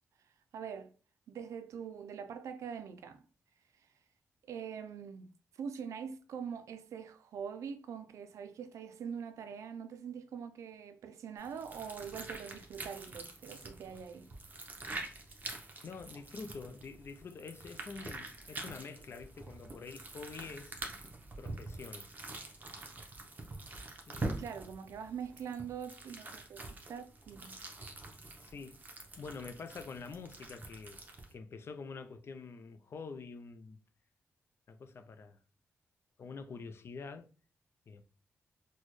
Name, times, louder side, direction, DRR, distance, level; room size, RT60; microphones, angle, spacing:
voice 1, 0.5-0.9 1.3-3.2 4.5-5.3 5.6-14.3 21.5-21.6 24.4-27.6, right 7 dB, 85° right, 0.4 m, -43 dB
sound 1, 11.4-31.3, right 2 dB, 35° right, 0.8 m, -45 dB
voice 2, 15.8-20.8 21.4-22.1 24.1-24.5 28.4-28.9 29.2-31.0 31.3-33.8 34.7-35.4 36.2-37.3 37.9-38.1, left 4 dB, 55° left, 0.4 m, -46 dB
4.1 x 2.1 x 3.1 m
cardioid pair, 100°, 5 cm